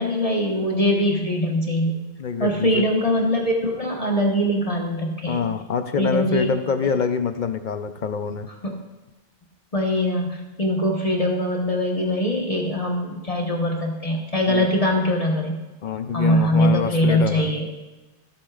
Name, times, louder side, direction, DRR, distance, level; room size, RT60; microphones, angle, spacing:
voice 1, 0.0-2.0 2.4-5.4 6.0-6.5 8.6-8.7 9.7-15.6 16.1-17.7, equal, 35° left, 0 dB, 1.3 m, -22 dB
voice 2, 2.2-2.9 5.3-8.5 14.5-14.7 15.8-17.5, left 6 dB, 50° left, 8 dB, 0.7 m, -25 dB
15.0 x 8.3 x 2.4 m, 1.1 s
omnidirectional pair, 1.2 m